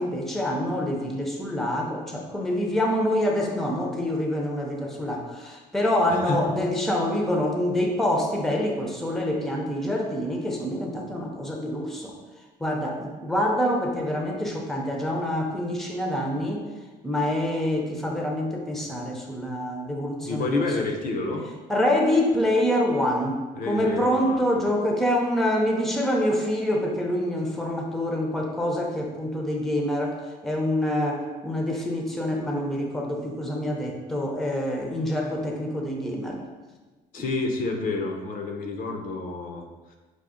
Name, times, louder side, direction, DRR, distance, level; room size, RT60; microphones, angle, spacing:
voice 1, 0.0-12.1 12.6-16.6 17.0-20.7 21.7-30.2 30.4-36.4 37.2-37.3, left 1 dB, ahead, 0 dB, 0.6 m, -26 dB
voice 2, 6.1-6.4 20.2-21.5 23.6-24.5 37.1-40.0, left 3 dB, 55° left, 3 dB, 0.5 m, -29 dB
5.0 x 2.1 x 3.6 m, 1.2 s
cardioid pair, 110°, 17 cm